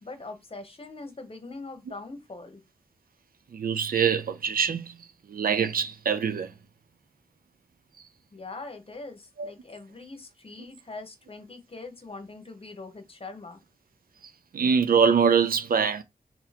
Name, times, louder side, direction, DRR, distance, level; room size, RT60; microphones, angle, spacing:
voice 1, 0.0-2.6 8.3-13.6, left 3 dB, 40° left, 1.0 m, -42 dB
voice 2, 3.5-4.9 5.3-6.5 9.4-9.5 14.5-16.0, right 6 dB, 80° right, 0.5 m, -23 dB
2.8 x 2.7 x 4.1 m
wide cardioid pair, 80°, 15 cm